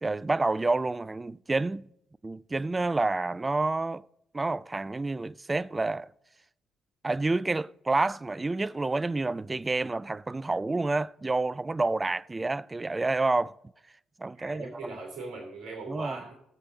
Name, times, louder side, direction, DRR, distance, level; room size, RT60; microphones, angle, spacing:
voice 1, 0.0-1.9 2.2-4.0 4.3-6.1 7.0-13.5 14.2-15.0 15.9-16.2, right 3 dB, 20° right, 0.3 m, -29 dB
voice 2, 14.3-16.3, right 3 dB, 60° right, 2.9 m, -40 dB
16.0 x 7.9 x 3.9 m
figure-of-eight pair, 45°, 0 cm